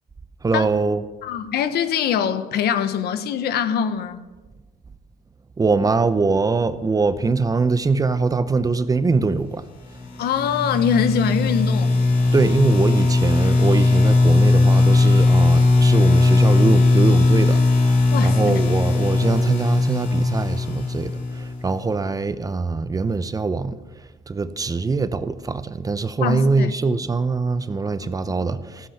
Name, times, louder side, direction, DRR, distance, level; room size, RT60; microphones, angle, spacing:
voice 1, 0.4-1.0 5.6-9.6 12.3-23.8 24.3-28.9, right 4 dB, 20° right, 0.7 m, -22 dB
voice 2, 1.2-4.2 10.2-12.0 18.1-18.6 26.2-26.7, left 8 dB, 70° left, 1.2 m, -23 dB
sound 1, 10.0-21.7, left 2 dB, 55° left, 3.5 m, -18 dB
15.0 x 14.0 x 5.8 m
cardioid pair, 110°, 17 cm